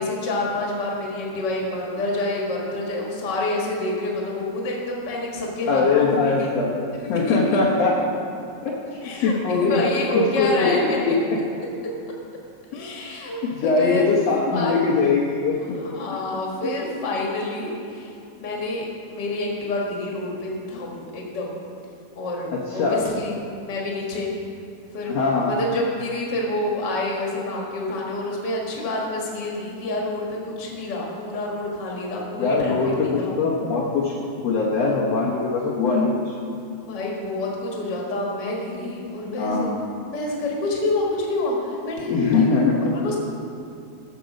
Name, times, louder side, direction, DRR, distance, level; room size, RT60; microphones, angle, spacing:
voice 1, 0.0-6.5 7.0-7.6 9.0-11.1 12.7-13.4 13.6-14.1 14.5-14.8 15.6-18.8 19.1-21.6 22.2-23.4 23.7-24.3 24.9-25.2 25.4-32.8 33.0-33.3 36.8-39.7 40.0-43.2, left 2 dB, 45° left, -2 dB, 1.5 m, -28 dB
voice 2, 5.7-7.9 8.6-8.7 9.2-9.8 10.1-10.7 11.0-11.2 13.3-15.6 16.6-16.7 22.5-23.0 25.1-25.5 32.4-34.1 34.4-36.3 39.4-39.8 42.1-42.7, left 4 dB, 75° left, -5 dB, 1.5 m, -21 dB
13.5 x 7.0 x 5.1 m, 2.5 s
omnidirectional pair, 4.4 m